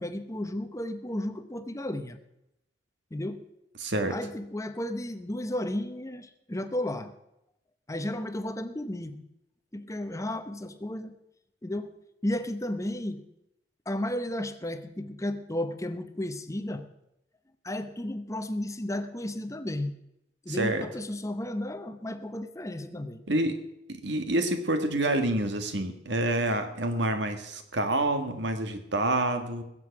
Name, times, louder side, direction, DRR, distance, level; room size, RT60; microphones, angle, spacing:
voice 1, 0.0-2.2 3.1-3.4 4.1-7.1 7.9-9.3 9.7-11.1 11.6-11.9 12.2-13.2 13.9-16.9 17.6-20.0 20.4-23.2, left 1 dB, 15° left, 10 dB, 0.7 m, -33 dB
voice 2, 3.8-4.2 20.5-20.9 23.3-23.6 23.9-29.6, right 1 dB, 65° right, 7 dB, 1.7 m, -27 dB
21.0 x 7.7 x 5.9 m, 0.85 s
head